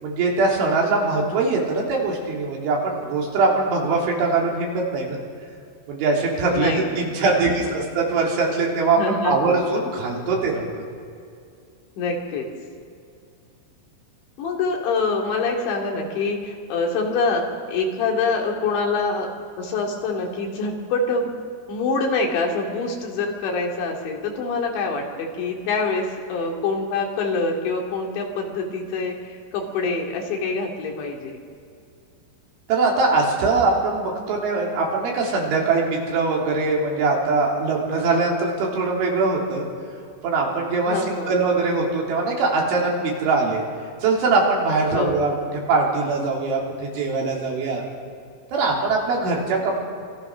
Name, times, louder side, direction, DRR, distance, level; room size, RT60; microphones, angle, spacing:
voice 1, 0.0-5.2 5.9-9.0 9.2-10.8 32.7-39.7 40.2-41.0 41.3-43.6 44.0-45.3 45.7-47.9 48.5-49.8, right 3 dB, 80° right, -2 dB, 5.8 m, -22 dB
voice 2, 6.5-7.9 9.0-9.6 10.3-10.4 12.0-12.5 14.4-19.3 19.6-21.3 21.7-31.4 40.8-41.4 44.9-45.4, left 3 dB, 70° left, 0 dB, 4.7 m, -25 dB
27.0 x 21.5 x 6.3 m, 2.4 s
omnidirectional pair, 5.5 m